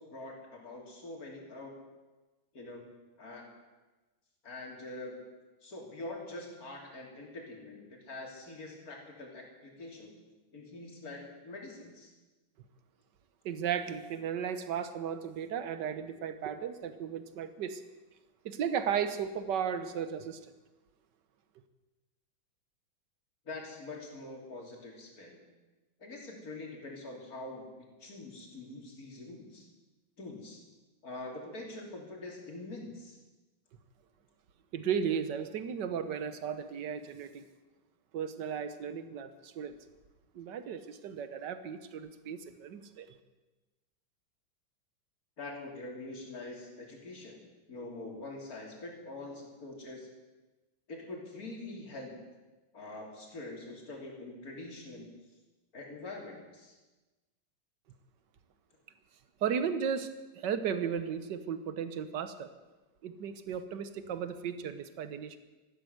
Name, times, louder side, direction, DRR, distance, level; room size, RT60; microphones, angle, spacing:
voice 1, 0.0-1.7 2.5-2.8 3.2-3.5 4.4-5.2 5.6-10.1 10.5-12.1 23.5-25.4 26.0-29.7 30.2-30.6 31.0-33.2 45.4-50.1 50.9-52.1 52.7-55.1 55.7-56.8, left 2 dB, 45° left, 0 dB, 3.5 m, -44 dB
voice 2, 13.4-17.8 18.4-20.4 34.7-37.5 38.1-39.8 40.3-43.1 59.4-60.1 60.3-62.5 63.0-65.4, right 7 dB, 60° right, 11 dB, 1.6 m, -35 dB
14.5 x 12.0 x 8.0 m, 1.2 s
omnidirectional pair, 2.3 m